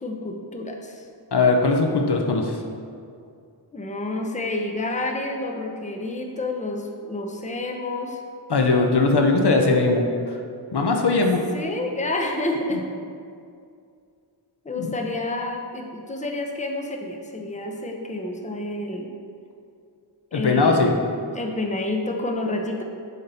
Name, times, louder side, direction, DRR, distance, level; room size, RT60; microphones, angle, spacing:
voice 1, 0.0-1.0 3.7-8.2 11.5-12.8 14.6-19.1 20.3-21.0 21.3-22.8, left 2 dB, 15° left, 2 dB, 0.7 m, -29 dB
voice 2, 1.3-2.6 8.5-10.4 10.7-11.4 14.7-14.9 20.3-20.9, left 3 dB, 60° left, 2 dB, 0.7 m, -20 dB
6.5 x 4.2 x 4.1 m, 2.4 s
wide cardioid pair, 50°, 45 cm